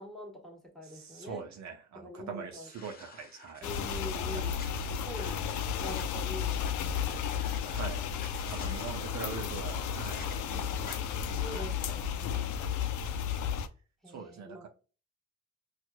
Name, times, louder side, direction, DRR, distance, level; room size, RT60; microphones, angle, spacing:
voice 1, 0.0-1.4 1.9-2.7 3.6-4.6 4.9-5.5 5.8-7.2 11.4-12.6 14.0-14.6, left 1 dB, ahead, 1.4 m, -45 dB
voice 2, 0.8-3.7 4.3-4.5 7.6-8.0 8.5-12.1 14.1-14.7, right 6 dB, 60° right, 0.7 m, -43 dB
sound 1, 2.6-4.0 4.6-6.1 6.6-6.7 7.0-7.8 8.2-8.9 10.0-10.4 10.9-11.0, left 3 dB, 30° left, 1.1 m, -49 dB
sound 2, 3.6-13.7, left 7 dB, 70° left, 0.5 m, -33 dB
sound 3, 8.6-12.0, right 3 dB, 15° right, 0.6 m, -53 dB
4.4 x 2.4 x 2.2 m
supercardioid pair, 65°, 31 cm